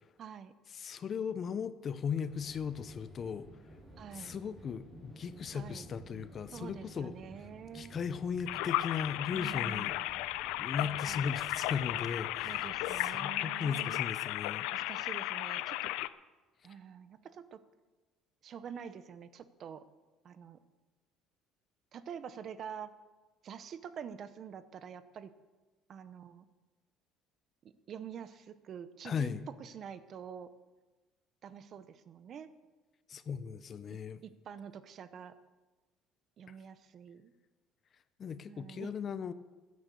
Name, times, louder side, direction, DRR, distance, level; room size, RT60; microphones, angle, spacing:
voice 1, 0.2-0.5 4.0-4.4 5.5-5.9 6.5-8.0 9.3-10.2 10.8-11.3 12.4-14.0 14.7-15.8 16.6-17.6 18.4-19.8 20.2-20.6 21.9-22.9 23.4-25.3 25.9-26.5 27.9-30.5 31.4-32.5 34.2-35.4 36.4-37.3 38.5-38.9, right 8 dB, 40° right, 13 dB, 0.8 m, -46 dB
voice 2, 0.7-3.5 4.1-7.2 7.7-9.9 10.6-14.7 29.0-29.4 33.1-34.2 38.2-39.3, left 6 dB, 35° left, 13 dB, 0.7 m, -37 dB
sound 1, 2.2-13.0, right 1 dB, 15° right, 4.7 m, -54 dB
sound 2, 8.5-16.1, left 16 dB, 85° left, 0.5 m, -35 dB
15.5 x 9.6 x 6.9 m, 1.2 s
cardioid pair, 150°, 0 cm